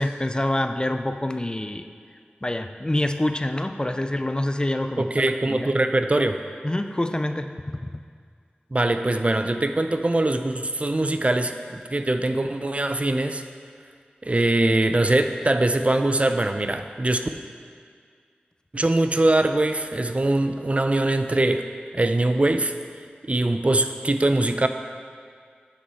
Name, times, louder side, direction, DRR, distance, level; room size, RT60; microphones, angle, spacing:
voice 1, 0.0-1.9 2.4-5.7 6.6-7.9, left 1 dB, 25° left, 8 dB, 0.4 m, -26 dB
voice 2, 5.0-6.4 8.7-13.4 14.2-17.3 18.7-21.6 21.9-22.7 23.2-24.7, right 2 dB, 35° right, 8 dB, 0.5 m, -22 dB
11.0 x 5.3 x 4.2 m, 2.1 s
wide cardioid pair, 40°, 4 cm